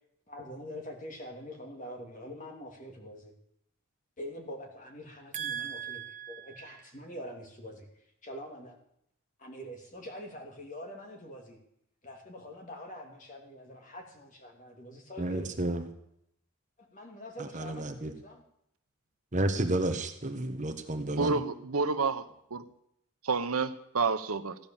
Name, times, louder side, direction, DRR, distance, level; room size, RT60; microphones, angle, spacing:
voice 1, 0.3-3.3 4.2-7.9 8.2-8.8 9.4-11.6 12.0-15.5 16.8-18.4, equal, 35° left, 2.8 m, -45 dB
voice 2, 5.3-6.7 15.2-15.9 17.4-18.1 19.3-21.4, right 2 dB, 35° right, 1.3 m, -32 dB
voice 3, 21.2-22.2 22.5-22.6 23.2-24.6, right 4 dB, 85° right, 1.0 m, -29 dB
15.5 x 10.5 x 7.2 m
head